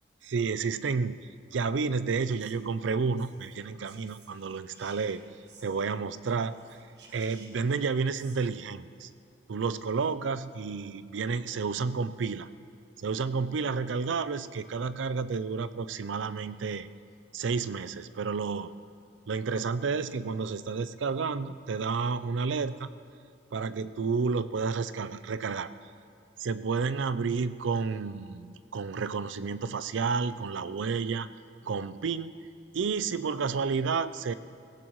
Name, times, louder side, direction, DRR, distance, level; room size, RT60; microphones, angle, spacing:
voice 1, 0.2-1.2 1.5-5.2 5.6-6.6 7.1-9.1 9.5-12.5 13.0-16.9 17.3-18.7 19.3-22.9 23.5-25.7 26.4-31.3 31.6-32.3 32.7-34.3, right 5 dB, 85° right, 14 dB, 0.5 m, -30 dB
Whispering, 2.4-5.9 6.2-8.4, right 4 dB, 65° right, 1.5 m, -57 dB
17.5 x 16.5 x 3.1 m, 2.4 s
head